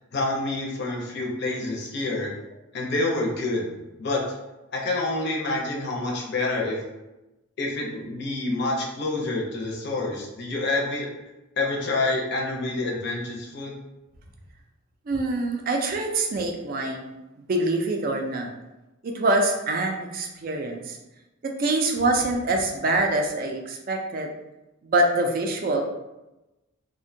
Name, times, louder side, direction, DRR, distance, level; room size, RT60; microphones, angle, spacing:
voice 1, 0.1-2.3 2.7-4.2 4.7-6.8 7.6-11.1 11.6-13.7, left 2 dB, 55° left, -1 dB, 0.5 m, -27 dB
voice 2, 15.1-17.1 17.5-18.5 19.0-21.0 21.4-24.3 24.8-25.8, right 2 dB, 45° right, 3 dB, 0.3 m, -25 dB
2.5 x 2.1 x 2.6 m, 0.99 s
head